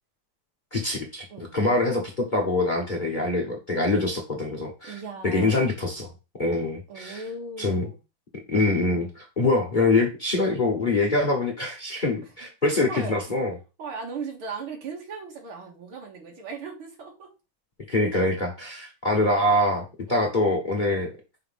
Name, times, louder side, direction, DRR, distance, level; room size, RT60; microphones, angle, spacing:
voice 1, 0.7-1.2 1.5-4.9 5.2-6.1 6.4-7.2 7.6-7.8 8.5-13.5 17.9-21.1, left 2 dB, 30° left, 1 dB, 1.1 m, -24 dB
voice 2, 4.9-5.8 6.9-8.0 12.2-12.3 12.9-13.4 13.8-17.3 19.1-19.6 20.1-20.4, right 4 dB, 90° right, 0 dB, 2.7 m, -38 dB
5.7 x 3.1 x 5.7 m, 0.29 s
omnidirectional pair, 2.3 m